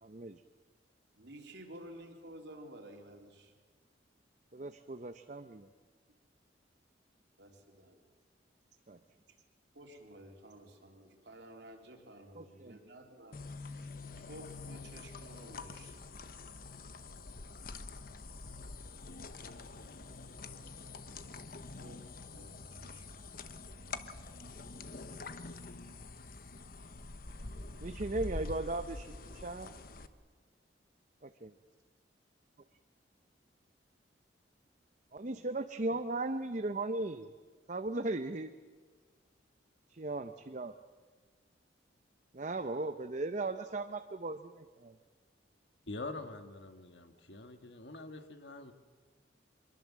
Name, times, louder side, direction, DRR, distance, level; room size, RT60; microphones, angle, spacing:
voice 1, 0.0-0.4 4.5-5.7 8.9-9.0 12.3-12.8 27.8-29.7 31.2-31.5 35.1-37.3 37.7-38.5 39.9-40.7 42.3-45.0, right 2 dB, 40° right, 8 dB, 0.8 m, -37 dB
voice 2, 1.2-3.5 7.4-8.0 9.3-9.4 9.7-16.0 21.8-24.4, right 1 dB, 65° right, 2 dB, 3.5 m, -53 dB
sound 1, 13.3-30.1, left 3 dB, 50° left, 1.1 m, -46 dB
voice 3, 45.9-48.7, left 2 dB, 70° left, 6 dB, 1.9 m, -45 dB
24.5 x 22.5 x 7.5 m, 1.5 s
head